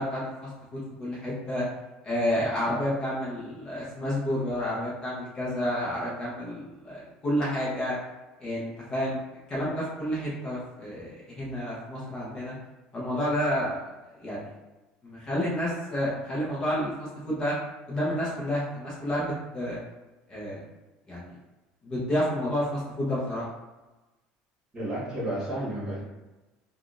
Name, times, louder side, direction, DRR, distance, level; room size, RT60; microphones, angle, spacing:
voice 1, 0.0-1.6 2.0-8.0 8.4-9.2 9.5-12.5 12.9-13.8 14.2-14.5 15.0-17.6 17.9-19.8 20.3-20.6 21.1-21.3 21.8-23.5, equal, 25° left, -7 dB, 0.8 m, -30 dB
voice 2, 24.7-26.0, right 1 dB, 20° right, -7 dB, 1.3 m, -31 dB
3.5 x 2.3 x 2.5 m, 1.1 s
cardioid pair, 150°, 3 cm